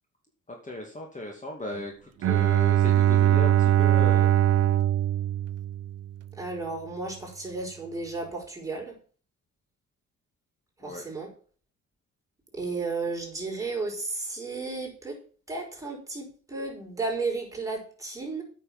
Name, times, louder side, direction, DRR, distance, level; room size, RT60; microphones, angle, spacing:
voice 1, 0.5-4.3 10.8-11.0, left 1 dB, 25° left, 1 dB, 2.5 m, -37 dB
Bowed string instrument, 2.2-6.2, right 12 dB, 55° right, 0.6 m, -21 dB
voice 2, 6.3-9.0 10.8-11.3 12.5-15.2 15.5-18.4, right 3 dB, 10° right, -1 dB, 5.3 m, -33 dB
8.6 x 6.7 x 7.3 m, 0.42 s
cardioid pair, 90°, 30 cm